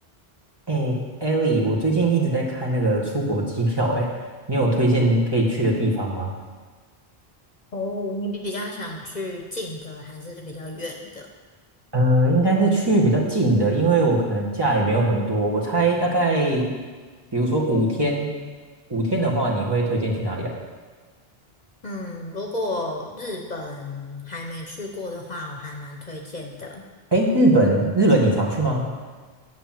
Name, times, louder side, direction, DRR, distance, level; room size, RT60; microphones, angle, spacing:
voice 1, 0.7-4.1 4.5-6.3 11.9-16.7 17.3-18.3 18.9-20.5 27.1-28.8, right 2 dB, 25° right, -4 dB, 1.7 m, -21 dB
voice 2, 7.7-11.3 21.8-26.8, left 1 dB, 45° left, 1 dB, 1.1 m, -32 dB
9.9 x 5.9 x 7.6 m, 1.4 s
omnidirectional pair, 1.0 m